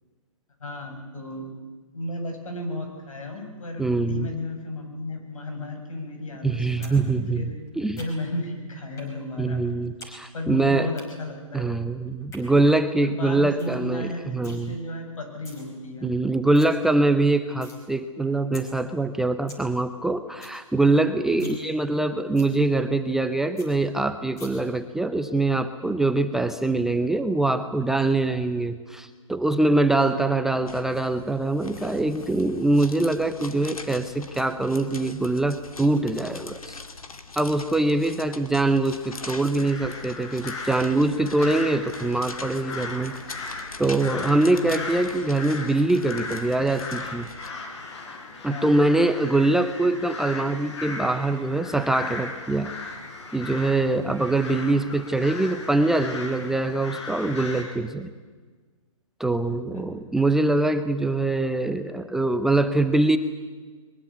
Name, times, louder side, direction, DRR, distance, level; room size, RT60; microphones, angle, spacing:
voice 1, 0.6-1.5 1.9-7.5 8.0-9.6 10.3-11.7 13.0-16.1 21.4-21.6 28.5-28.6 30.0-30.3 38.0-38.3 41.4-41.7 44.4-44.7 48.5-48.8 53.9-54.1 59.7-59.8, left 1 dB, 75° left, 4 dB, 7.8 m, -34 dB
voice 2, 3.8-4.3 6.4-7.4 7.8-8.0 9.4-10.9 11.5-14.7 16.0-36.8 37.4-43.2 43.8-47.3 48.4-52.7 53.3-58.1 59.2-63.2, right 2 dB, ahead, 8 dB, 0.6 m, -23 dB
sound 1, 6.8-7.0 7.3-8.4 9.0-9.1 9.4-10.1 10.4-11.0 12.1-12.4 12.9-13.0 13.3-13.4 13.6-13.8 14.1-14.6 15.2-15.6 16.0-16.1 16.3-16.7 17.1-17.8 18.2-18.3 18.5-18.6 19.0-19.1 19.3-19.6 20.0-20.1 20.3-20.6 20.9-21.0 21.3-21.6 21.9-22.0 22.4-22.5 22.9-23.0 23.2-23.3 23.6-23.7 24.4-24.5, left 1 dB, 15° left, 5.3 m, -45 dB
sound 2, 30.6-47.5, left 3 dB, 90° left, 2.4 m, -42 dB
sound 3, 39.0-57.6, left 4 dB, 55° left, 6.0 m, -37 dB
22.5 x 21.5 x 8.6 m, 1.4 s
hypercardioid pair, 145°, 18 cm